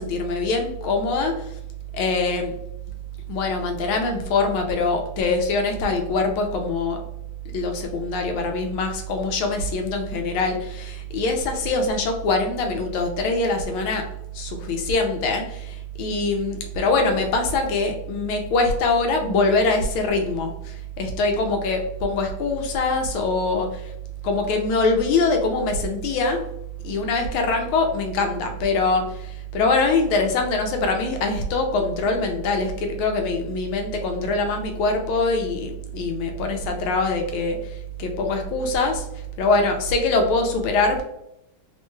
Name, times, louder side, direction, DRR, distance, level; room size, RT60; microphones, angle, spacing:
voice 1, 0.0-1.5 1.9-2.5 3.3-7.0 7.5-14.0 14.3-23.9 24.2-26.4 26.8-37.6 38.0-39.0 39.4-41.0, left 3 dB, 80° left, 4 dB, 1.4 m, -23 dB
3.6 x 2.2 x 3.1 m, 0.79 s
omnidirectional pair, 2.3 m